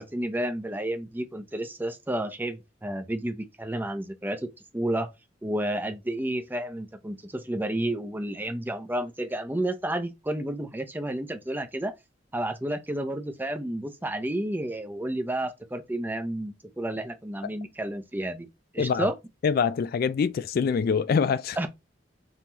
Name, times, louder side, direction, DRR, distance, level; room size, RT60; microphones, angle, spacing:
voice 1, 0.0-4.5 4.7-5.1 5.4-11.9 12.3-18.5 18.7-19.1 21.6-21.7, right 1 dB, 10° right, 0.6 m, -31 dB
voice 2, 19.4-21.6, left 6 dB, 55° left, 0.3 m, -24 dB
5.5 x 3.0 x 2.9 m
head